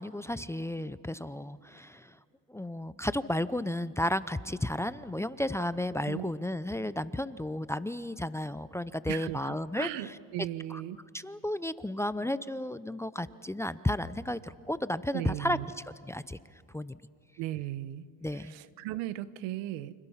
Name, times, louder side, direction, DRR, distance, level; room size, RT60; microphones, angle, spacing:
voice 1, 0.0-2.2 2.5-10.2 10.7-10.8 11.1-15.6 15.8-16.4 16.7-17.0 18.2-18.5, left 1 dB, 5° left, 15 dB, 0.6 m, -33 dB
voice 2, 9.1-11.0 15.1-15.6 17.4-18.1 18.3-19.9, right 14 dB, 85° right, 15 dB, 1.1 m, -37 dB
29.5 x 26.0 x 5.8 m, 2.1 s
cardioid pair, 105°, 43 cm